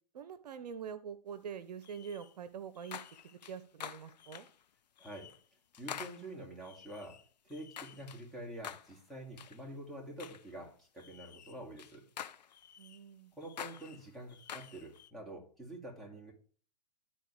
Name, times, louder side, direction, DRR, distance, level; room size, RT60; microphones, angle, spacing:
voice 1, 0.1-4.5 12.8-13.3, right 7 dB, 70° right, 14 dB, 0.8 m, -45 dB
sound 1, 1.8-2.3 2.7-4.6 5.0-5.4 5.7-8.3 8.6-9.0 9.4-9.6 10.2-10.5 11.0-13.0 13.4-15.1, left 9 dB, 80° left, 0.7 m, -48 dB
voice 2, 5.0-5.3 5.8-12.1 13.4-16.3, right 1 dB, ahead, -3 dB, 2.3 m, -47 dB
12.0 x 4.2 x 3.2 m, 0.42 s
hypercardioid pair, 130°, 21 cm